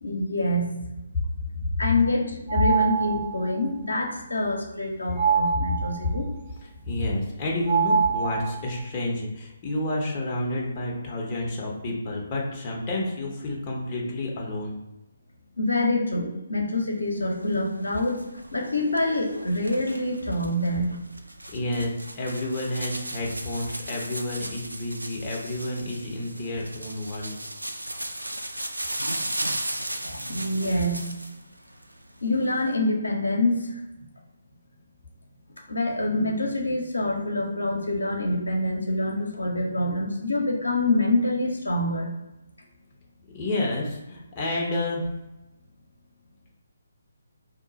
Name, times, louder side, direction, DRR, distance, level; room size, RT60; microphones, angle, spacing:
voice 1, 0.0-0.7 1.8-6.3 15.6-18.2 18.5-20.9 30.3-31.1 32.2-33.8 35.7-42.1, left 1 dB, 70° left, 0 dB, 0.7 m, -26 dB
sound 1, 2.5-3.5 5.2-6.2 7.7-8.8, right 6 dB, 30° right, 1.4 m, -24 dB
voice 2, 6.9-14.8 21.5-27.4 43.3-45.0, left 1 dB, 25° left, -3 dB, 0.7 m, -30 dB
sound 2, 17.1-31.4 31.8-32.8, right 1 dB, 80° right, 0.3 m, -36 dB
2.7 x 2.2 x 3.9 m, 0.94 s
figure-of-eight pair, 140°, 0 cm